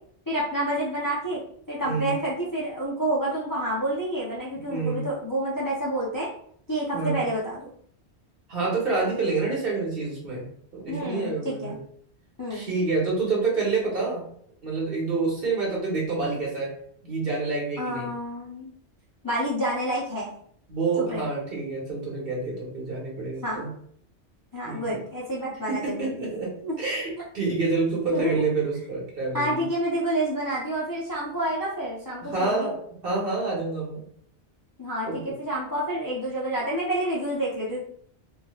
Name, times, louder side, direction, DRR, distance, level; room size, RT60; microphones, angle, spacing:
voice 1, 0.3-1.4 1.7-6.3 6.7-7.7 10.9-11.8 12.4-12.7 17.8-18.7 19.2-20.4 21.0-21.2 23.4-23.7 24.5-26.2 26.6-26.8 28.1-28.4 29.3-32.7 34.8-37.8, right 1 dB, 25° left, -6 dB, 0.4 m, -29 dB
voice 2, 4.7-5.0 6.9-7.2 8.5-10.5 10.7-11.8 12.5-14.2 14.6-16.7 17.0-18.1 20.7-23.7 24.6-25.0 25.7-26.5 26.8-29.6 32.2-32.7 33.0-34.1 35.0-35.2, right 3 dB, 55° right, -4 dB, 1.2 m, -27 dB
3.2 x 2.7 x 2.3 m, 0.63 s
omnidirectional pair, 1.2 m